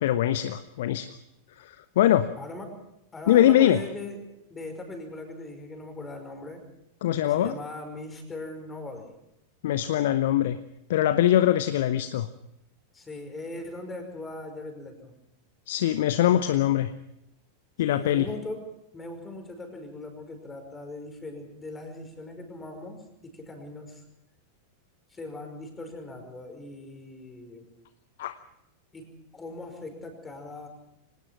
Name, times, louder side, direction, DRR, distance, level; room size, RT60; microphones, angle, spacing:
voice 1, 0.0-1.1 1.7-2.3 3.3-3.8 7.0-7.5 9.6-10.6 10.9-12.3 15.7-16.9 17.8-18.3 28.2-28.4, left 12 dB, 55° left, 13 dB, 0.9 m, -22 dB
voice 2, 2.4-2.9 3.1-6.7 7.2-9.1 12.9-15.2 17.9-18.6 18.9-24.0 25.1-27.7 28.9-30.7, left 2 dB, 15° left, 5 dB, 5.4 m, -40 dB
24.5 x 19.0 x 5.9 m, 0.82 s
figure-of-eight pair, 90°, 0 cm